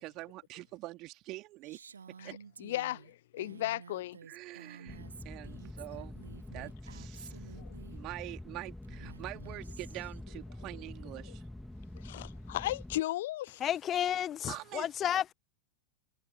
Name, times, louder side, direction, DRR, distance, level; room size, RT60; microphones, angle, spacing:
voice 1, 0.0-1.8 2.2-2.3 4.3-6.2 6.5-7.6 7.9-11.4 14.5-14.9, right 19 dB, 40° right, 3.1 m, -45 dB
Female speech woman speaking, 1.6-8.0 8.8-10.2, right 6 dB, 70° right, 1.9 m, -52 dB
voice 2, 2.2-4.2 7.5-7.7 11.3-11.4 11.9-13.6, left 15 dB, 55° left, 1.0 m, -36 dB
sound 1, 4.9-13.0, left 1 dB, 5° left, 2.3 m, -46 dB
voice 3, 13.6-15.3, left 10 dB, 30° left, 1.2 m, -32 dB
figure-of-eight pair, 90°, 0 cm